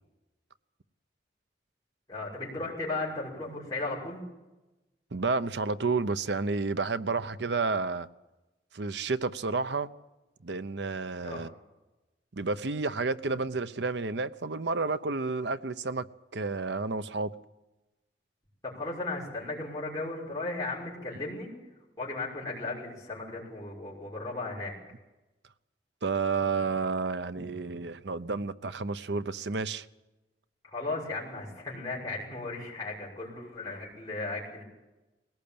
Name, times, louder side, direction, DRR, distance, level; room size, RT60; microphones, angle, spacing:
voice 1, 2.1-4.2 11.2-11.4 18.6-21.5 22.0-24.7 30.6-34.6, left 2 dB, 20° left, 6.1 m, -36 dB
voice 2, 5.1-8.1 8.7-9.9 10.4-11.5 12.3-16.1 16.3-17.3 26.0-29.9, right 4 dB, 70° right, 0.8 m, -30 dB
21.0 x 17.5 x 8.7 m
head